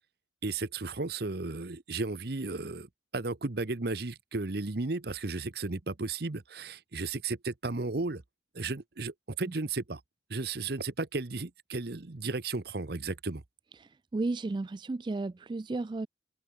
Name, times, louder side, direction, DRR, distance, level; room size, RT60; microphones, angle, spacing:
voice 1, 0.4-8.2 8.5-10.0 10.3-13.4, right 3 dB, 60° right, 1.0 m, -34 dB
voice 2, 13.8-16.1, right 3 dB, 25° right, 0.3 m, -34 dB
open air
head